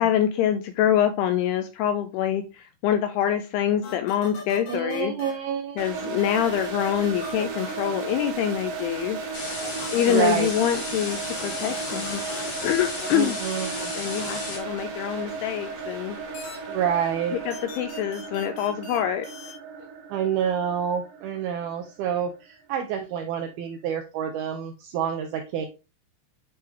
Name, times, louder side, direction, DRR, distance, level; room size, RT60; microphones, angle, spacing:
voice 1, 0.0-5.1 5.8-9.5 9.8-13.4 13.9-16.2 17.3-19.5, left 10 dB, 85° left, 8 dB, 2.4 m, -25 dB
sound 1, 3.8-5.3 6.2-8.0 9.6-10.8 11.1-14.4 16.3-16.6 17.5-19.0 19.2-19.5, left 3 dB, 65° left, 3.5 m, -39 dB
voice 2, 4.7-5.8 10.1-10.5 13.1-13.9 16.7-17.4 20.1-25.7, right 8 dB, 85° right, 5 dB, 2.2 m, -28 dB
sound 2, 5.8-22.6, right 5 dB, 60° right, 2.7 m, -35 dB
sound 3, 9.3-14.6, left 2 dB, 40° left, 2.0 m, -34 dB
9.2 x 3.3 x 3.3 m, 0.29 s
omnidirectional pair, 5.1 m